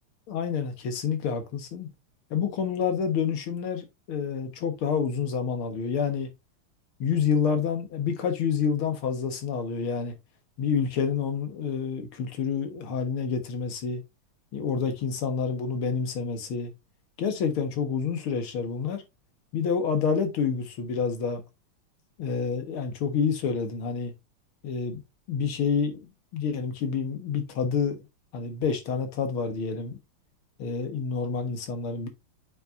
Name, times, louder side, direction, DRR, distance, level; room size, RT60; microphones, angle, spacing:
voice 1, 0.3-1.9 2.3-6.3 7.0-10.1 10.6-14.0 14.5-16.7 17.2-19.0 19.5-21.4 22.2-24.1 24.6-25.0 25.3-26.1 26.3-28.0 28.3-30.0 30.6-32.1, left 6 dB, 75° left, 2.2 m, -28 dB
8.6 x 5.6 x 2.6 m
omnidirectional pair, 2.4 m